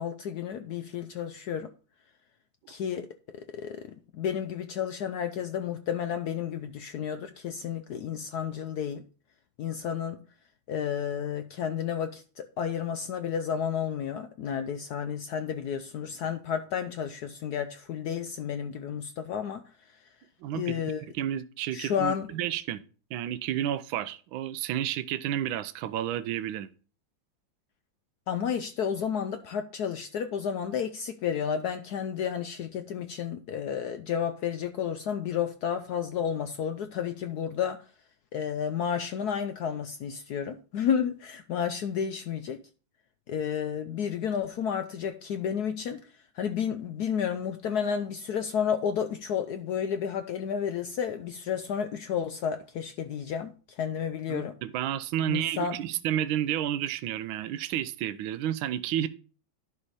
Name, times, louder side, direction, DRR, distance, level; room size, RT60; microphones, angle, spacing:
voice 1, 0.0-1.7 2.7-9.0 9.6-10.2 10.7-20.0 20.5-21.1 21.7-22.3 28.3-37.8 38.3-42.6 43.3-54.5 55.2-55.8, left 8 dB, 70° left, 0.9 m, -31 dB
voice 2, 20.4-20.7 21.2-22.8 23.1-26.7 54.3-59.1, right 11 dB, 80° right, 1.4 m, -31 dB
11.0 x 4.9 x 4.0 m
omnidirectional pair, 2.2 m